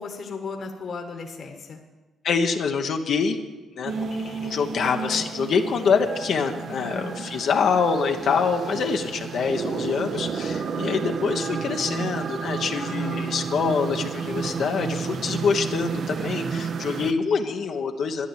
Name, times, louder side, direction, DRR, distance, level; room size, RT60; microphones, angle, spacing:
voice 1, 0.0-1.8 6.7-7.2 12.8-13.3, left 4 dB, 50° left, 3 dB, 1.7 m, -36 dB
voice 2, 2.2-3.4 3.8-18.3, left 5 dB, 65° left, 3 dB, 1.2 m, -25 dB
sound 1, 3.9-17.1, right 5 dB, 55° right, 0.9 m, -31 dB
12.5 x 10.0 x 8.2 m, 1.3 s
cardioid pair, 90°, 0 cm